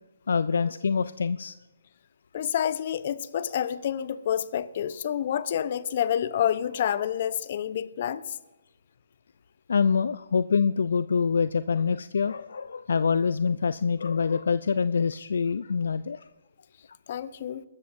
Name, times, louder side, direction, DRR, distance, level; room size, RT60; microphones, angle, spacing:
voice 1, 0.3-1.5 9.7-16.2, left 5 dB, 65° left, 0.4 m, -25 dB
voice 2, 2.3-8.2 17.1-17.6, left 9 dB, 45° left, 0.8 m, -28 dB
23.0 x 13.0 x 2.6 m
figure-of-eight pair, 140°, 0 cm